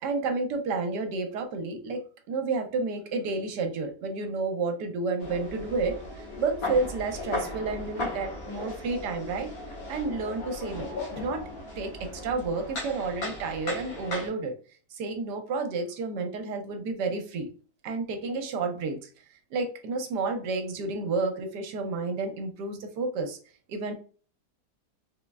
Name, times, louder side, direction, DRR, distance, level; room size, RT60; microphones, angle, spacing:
voice 1, 0.0-2.0 2.3-9.5 9.9-11.4 11.8-14.5 14.9-17.5 17.8-19.0 19.5-23.4 23.7-23.9, right 3 dB, 75° right, 6 dB, 1.2 m, -30 dB
sound 1, 5.2-14.3, left 2 dB, 55° left, 1.5 m, -37 dB
3.9 x 3.0 x 2.3 m, 0.40 s
omnidirectional pair, 1.9 m